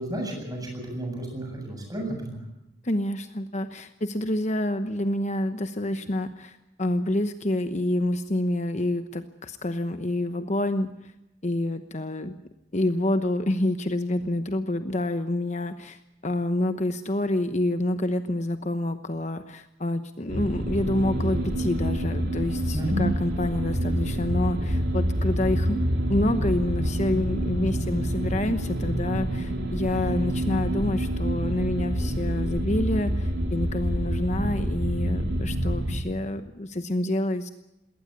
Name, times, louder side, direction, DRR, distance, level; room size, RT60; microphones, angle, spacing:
voice 1, 0.0-2.4 22.7-23.0, equal, 20° right, 2 dB, 7.9 m, -32 dB
voice 2, 2.8-11.1 11.4-12.4 12.7-25.8 26.1-37.5, left 1 dB, 40° left, 9 dB, 1.0 m, -28 dB
sound 1, 20.3-36.0, equal, 65° right, 4.0 m, -27 dB
21.0 x 18.5 x 8.2 m, 0.88 s
head